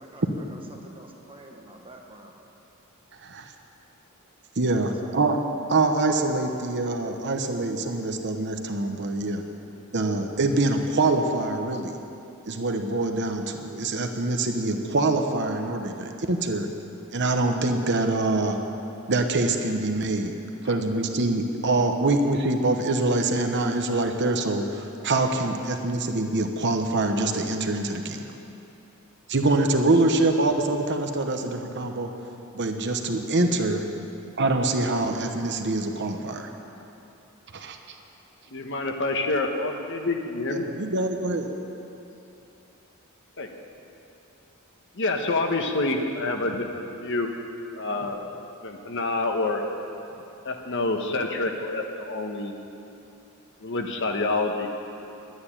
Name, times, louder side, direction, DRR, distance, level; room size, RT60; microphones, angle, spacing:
voice 1, 0.0-2.4 4.8-5.2, right 1 dB, 25° right, 1 dB, 1.5 m, -48 dB
voice 2, 4.6-5.4 5.7-9.4 9.9-12.0 12.5-16.7 17.1-18.6 19.1-20.3 20.6-28.2 29.3-32.1 32.5-33.8 34.4-36.5 37.5-37.8 40.5-41.5, right 2 dB, 55° right, 5 dB, 1.0 m, -25 dB
voice 3, 38.5-40.6 43.4-43.5 45.0-47.3 47.7-48.2 48.6-49.6 50.4-52.6 53.6-54.7, left 2 dB, 60° left, 4 dB, 1.2 m, -27 dB
11.0 x 9.4 x 9.9 m, 2.9 s
head